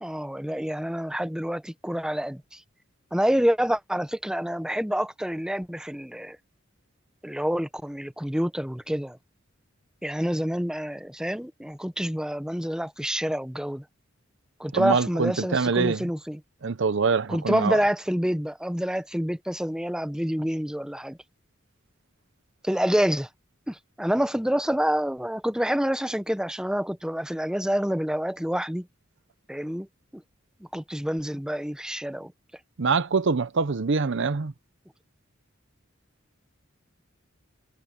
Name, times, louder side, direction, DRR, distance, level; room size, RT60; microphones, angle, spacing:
voice 1, 0.0-2.6 3.1-6.4 7.2-9.2 10.0-13.8 14.6-16.4 17.3-21.2 22.6-23.3 23.7-28.9 29.5-29.9 30.1-30.2 30.7-32.3 34.2-34.3, equal, 5° right, 0.9 m, -27 dB
voice 2, 14.7-16.1 16.6-17.8 32.8-34.5, right 4 dB, 65° right, 0.7 m, -24 dB
head